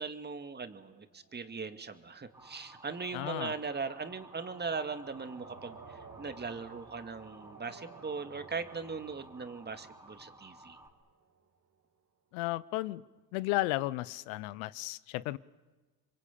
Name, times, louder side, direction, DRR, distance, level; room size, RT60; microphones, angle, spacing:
voice 1, 0.0-10.8, right 4 dB, 25° right, 2.2 m, -39 dB
sound 1, 0.8-11.7, right 5 dB, 45° right, 3.4 m, -56 dB
Motor vehicle (road) / Siren, 2.3-10.9, right 1 dB, 5° right, 3.9 m, -55 dB
voice 2, 3.1-3.5 12.3-13.0 13.3-15.4, left 18 dB, 85° left, 0.8 m, -34 dB
27.0 x 23.5 x 8.6 m
supercardioid pair, 80°, 39 cm